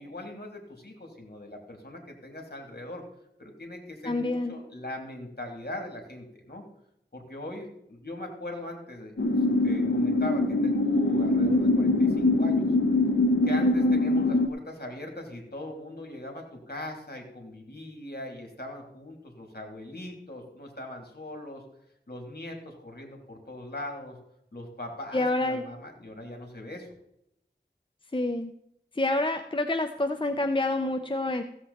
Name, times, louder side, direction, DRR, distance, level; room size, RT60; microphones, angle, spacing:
voice 1, 0.0-3.0 3.4-6.6 7.1-9.1 9.6-12.7 13.4-21.6 22.1-24.2 24.5-26.9, left 1 dB, 55° left, 2 dB, 3.1 m, -40 dB
voice 2, 4.1-4.6 13.6-14.0 25.1-25.6 28.1-28.5 28.9-31.4, left 2 dB, 25° left, 6 dB, 0.7 m, -27 dB
sound 1, 9.2-14.5, left 2 dB, 85° left, 0.9 m, -23 dB
15.0 x 7.9 x 4.3 m, 0.79 s
wide cardioid pair, 45°, 19 cm